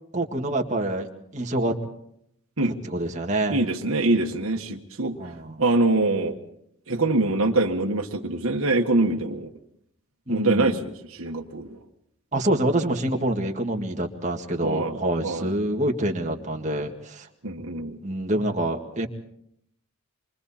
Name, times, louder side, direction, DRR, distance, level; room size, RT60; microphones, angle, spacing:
voice 1, 0.1-1.1 1.3-1.7 2.6-3.6 5.2-5.6 10.3-10.8 12.3-17.3 18.0-19.1, right 1 dB, 30° right, 2 dB, 1.8 m, -26 dB
voice 2, 3.5-5.2 5.6-6.3 6.9-9.5 10.3-11.8 14.6-15.0 15.2-15.5 17.4-18.0, right 2 dB, 65° right, 2 dB, 1.6 m, -24 dB
27.5 x 24.0 x 4.3 m, 0.73 s
head